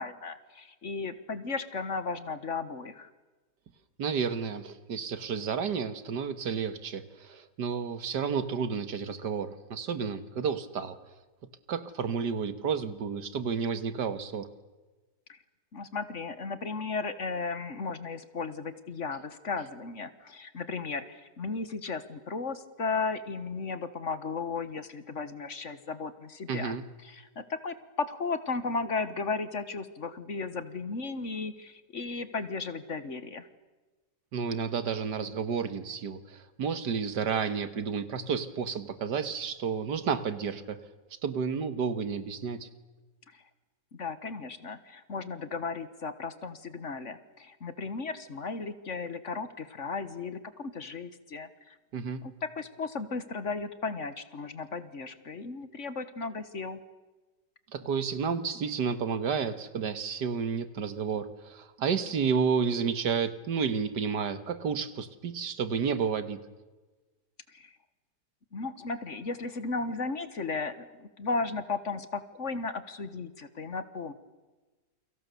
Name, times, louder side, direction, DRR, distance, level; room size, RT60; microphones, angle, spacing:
voice 1, 0.0-3.1 15.3-15.4 15.7-26.7 27.0-33.5 43.3-43.4 43.9-51.8 52.2-56.8 67.5-67.7 68.5-74.1, left 4 dB, 45° left, 12 dB, 1.7 m, -35 dB
voice 2, 4.0-11.0 11.7-14.5 26.5-26.8 34.3-40.8 41.2-42.7 51.9-52.3 57.7-66.4, right 6 dB, 80° right, 12 dB, 2.1 m, -31 dB
29.0 x 24.0 x 6.9 m, 1.2 s
omnidirectional pair, 1.8 m